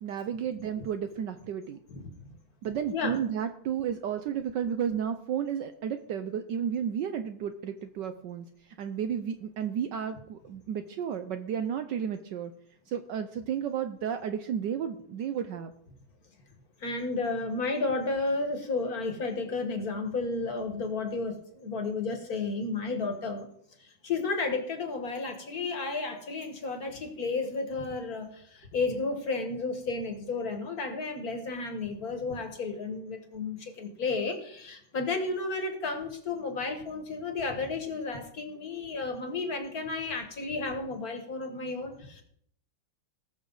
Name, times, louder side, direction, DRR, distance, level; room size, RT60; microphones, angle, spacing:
voice 1, 0.0-1.8 2.6-8.5 8.8-12.5 12.9-15.7, right 8 dB, 70° right, 9 dB, 1.1 m, -32 dB
voice 2, 16.8-23.5 23.8-42.2, left 3 dB, 45° left, 6 dB, 1.7 m, -32 dB
19.0 x 6.4 x 3.9 m, 0.66 s
omnidirectional pair, 2.3 m